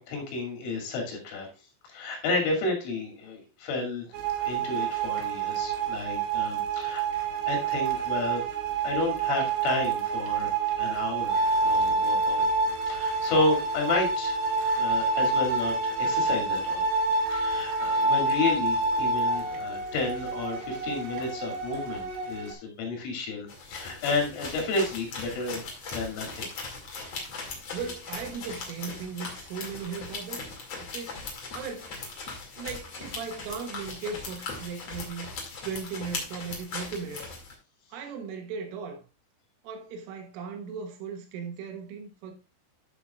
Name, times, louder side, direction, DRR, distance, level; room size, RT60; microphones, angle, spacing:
voice 1, 0.0-1.5 1.9-4.1 4.5-7.0 7.5-8.4 8.8-12.4 12.9-14.4 14.7-16.9 17.2-25.6 25.9-26.5, left 3 dB, 75° left, 5.0 m, -31 dB
sound 1, 4.1-22.5, right 3 dB, 60° right, 3.1 m, -27 dB
sound 2, 23.5-37.5, left 4 dB, 45° left, 2.5 m, -39 dB
voice 2, 27.7-32.0 32.6-35.3 35.6-37.3 37.9-39.0 39.6-42.3, right 5 dB, 80° right, 3.8 m, -37 dB
13.0 x 7.0 x 2.4 m
omnidirectional pair, 5.8 m